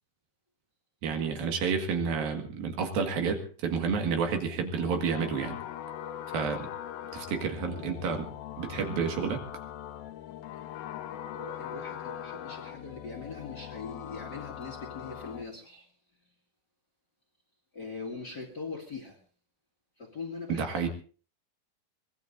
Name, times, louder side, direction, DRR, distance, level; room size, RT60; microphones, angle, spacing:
voice 1, 1.0-5.6 6.3-6.7 7.1-8.3 8.6-9.4 20.5-20.9, right 5 dB, 75° right, 4 dB, 3.7 m, -30 dB
sound 1, 4.8-15.4, left 10 dB, 80° left, 2.9 m, -41 dB
voice 2, 11.3-15.9 17.7-19.2 20.0-20.9, left 4 dB, 35° left, -2 dB, 2.0 m, -41 dB
24.0 x 20.0 x 2.7 m, 0.40 s
omnidirectional pair, 4.2 m